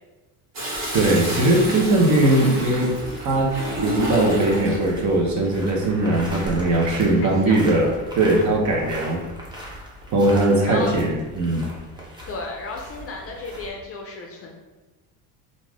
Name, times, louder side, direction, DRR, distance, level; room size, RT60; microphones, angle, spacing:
Toilet flush, 0.5-4.9 6.2-6.7, equal, 65° right, 1.4 m, -30 dB
sound 1, 0.7-13.7, equal, 10° right, 0.6 m, -39 dB
voice 1, 0.9-2.9 3.2-9.2 10.1-11.6, right 2 dB, 45° right, -1 dB, 0.7 m, -20 dB
voice 2, 7.2-7.8 8.3-8.4 10.7-11.0 12.3-14.5, left 3 dB, 35° left, 0 dB, 0.4 m, -34 dB
2.6 x 2.4 x 3.3 m, 1.2 s
cardioid pair, 115°, 42 cm